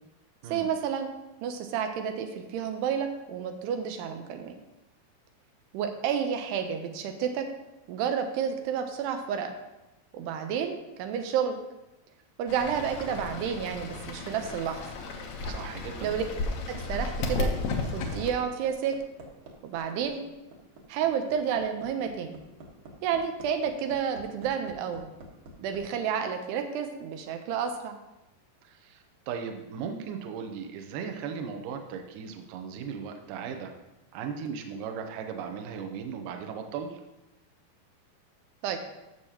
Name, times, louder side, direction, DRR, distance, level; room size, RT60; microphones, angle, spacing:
voice 1, 0.5-1.1 1.4-4.6 5.7-7.5 7.9-9.6 10.1-11.6 12.4-14.8 16.0-16.2 16.7-17.5 17.9-18.9 19.6-20.2 20.9-22.4 23.0-25.1 25.6-28.0 38.6-38.8, right 7 dB, 90° right, 6 dB, 2.9 m, -30 dB
Fowl / Bird, 12.5-18.3, left 3 dB, 85° left, 1.6 m, -34 dB
voice 2, 15.4-16.2 28.6-33.7 34.1-37.0, right 6 dB, 75° right, 4 dB, 2.0 m, -37 dB
Hammer, 16.5-25.8 27.2-27.3, right 2 dB, 60° right, 2.6 m, -48 dB
14.0 x 6.6 x 2.9 m, 0.98 s
omnidirectional pair, 4.7 m